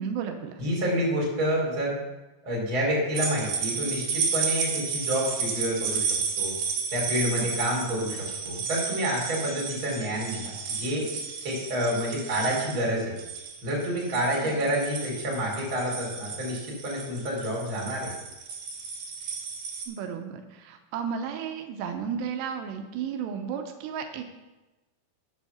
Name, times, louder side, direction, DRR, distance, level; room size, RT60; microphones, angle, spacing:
voice 1, 0.0-0.6 14.4-14.5 19.9-24.2, right 7 dB, 90° right, 5 dB, 3.0 m, -33 dB
voice 2, 0.6-2.0 2.4-6.1 6.4-6.5 6.9-11.1 11.4-13.1 13.6-18.1, equal, 30° right, -3 dB, 3.9 m, -28 dB
sound 1, 3.2-19.9, right 5 dB, 60° right, 4.4 m, -32 dB
9.1 x 7.5 x 7.0 m, 1.1 s
omnidirectional pair, 4.8 m